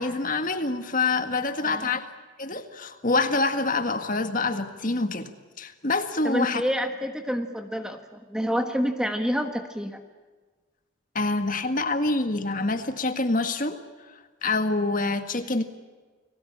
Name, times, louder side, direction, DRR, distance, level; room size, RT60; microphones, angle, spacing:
voice 1, 0.0-2.0 2.4-5.3 5.6-6.6 11.2-13.8 14.4-15.6, left 3 dB, 40° left, 8 dB, 1.8 m, -26 dB
voice 2, 6.2-10.0, equal, 5° right, 6 dB, 1.4 m, -28 dB
29.5 x 20.0 x 8.7 m, 1.4 s
head